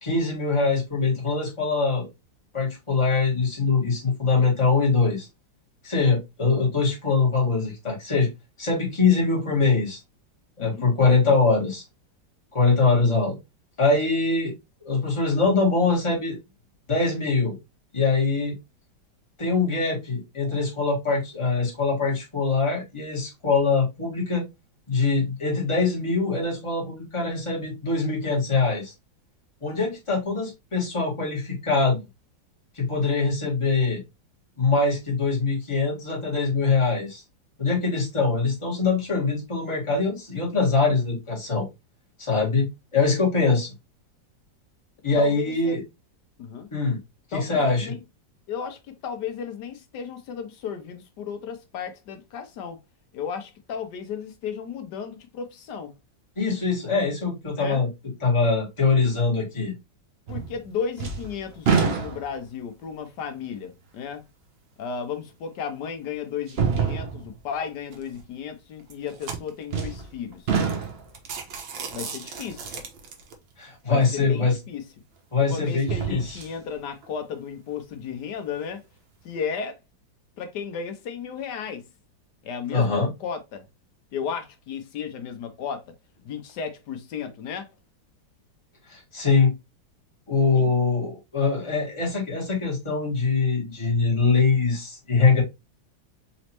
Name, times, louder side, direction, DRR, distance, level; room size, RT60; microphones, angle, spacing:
voice 1, 0.0-2.1 2.5-5.3 5.8-8.3 8.6-10.0 10.6-11.8 12.5-13.3 13.8-14.5 14.8-16.4 16.9-17.6 17.9-18.5 19.4-24.4 24.9-28.9 29.6-32.0 32.7-34.0 34.6-37.2 37.6-41.7 42.2-42.7 42.9-43.7 45.0-45.8 46.7-47.0 47.3-47.9 56.4-59.7 73.6-74.6 75.3-76.4 82.7-83.1 88.9-89.5 90.3-95.4, left 4 dB, 15° left, 1.7 m, -23 dB
voice 2, 45.2-45.8 46.4-46.7 47.3-48.0 48.5-52.8 53.1-55.9 56.9-57.0 57.5-57.8 60.3-64.2 64.8-70.6 71.9-72.8 73.9-74.8 75.4-78.8 79.2-79.8 80.4-81.9 82.4-83.6 84.1-85.9 86.2-87.7 90.5-90.7, left 6 dB, 70° left, 1.2 m, -34 dB
sound 1, 60.3-60.7 61.0-62.5 63.2-63.3 65.1-65.2 66.5-67.4 69.7-70.1 70.5-71.2 74.2-74.3 75.7-76.6 77.0-77.1, right 6 dB, 60° right, 0.6 m, -26 dB
sound 2, 67.9-68.2 68.8-69.8 70.3-70.4 70.7-70.8 71.1-73.3, right 6 dB, 80° right, 1.7 m, -37 dB
4.1 x 3.1 x 2.8 m
omnidirectional pair, 2.0 m